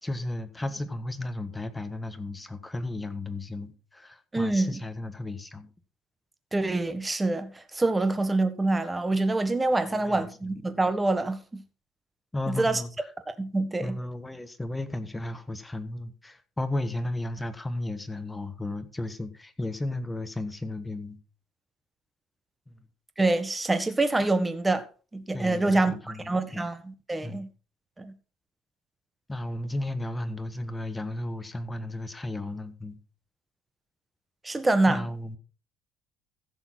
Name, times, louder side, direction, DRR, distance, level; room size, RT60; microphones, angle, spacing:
voice 1, 0.0-5.7 9.9-10.5 12.3-13.1 13.8-21.2 25.3-26.7 27.2-27.4 29.3-33.0 34.9-35.4, left 1 dB, 10° left, 1.4 m, -34 dB
voice 2, 4.3-4.8 6.5-11.4 12.5-12.8 13.3-14.0 23.2-24.8 25.1-25.9 26.2-27.5 28.0-28.1 34.4-35.1, right 2 dB, 15° right, 1.6 m, -26 dB
16.0 x 7.0 x 4.2 m
cardioid pair, 125°, 0 cm